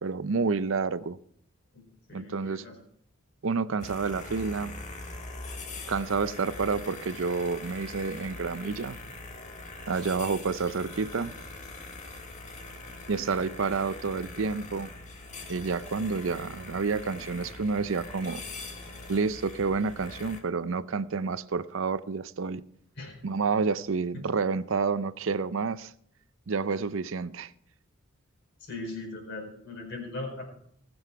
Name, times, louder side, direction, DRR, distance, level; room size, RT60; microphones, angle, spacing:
voice 1, 0.0-1.2 2.1-2.6 3.4-4.7 5.9-9.0 9.9-11.4 13.1-14.9 15.5-18.4 19.1-22.6 23.2-25.9 26.5-27.5, right 4 dB, 65° right, 0.5 m, -29 dB
voice 2, 1.7-2.7 23.0-23.2 28.6-30.4, left 2 dB, 55° left, 4.7 m, -39 dB
sound 1, 3.8-20.4, left 2 dB, 35° left, 1.5 m, -42 dB
19.0 x 8.0 x 4.6 m
head